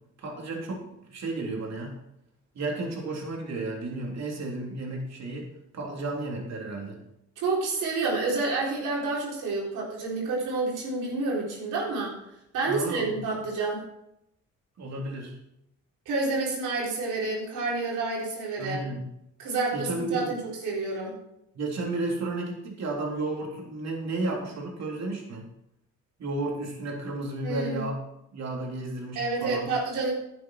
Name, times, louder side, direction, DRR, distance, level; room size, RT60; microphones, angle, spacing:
voice 1, 0.2-1.9 2.5-7.0 12.6-13.2 14.8-15.4 18.6-19.0 19.7-20.3 21.5-25.4 26.2-28.0 28.3-29.7, right 2 dB, 60° right, -1 dB, 3.3 m, -33 dB
voice 2, 7.4-12.2 12.5-13.8 16.1-18.8 19.4-21.1 27.4-27.9 29.2-30.1, right 3 dB, 85° right, -3 dB, 4.0 m, -29 dB
11.0 x 8.5 x 4.4 m, 0.81 s
cardioid pair, 90°, 30 cm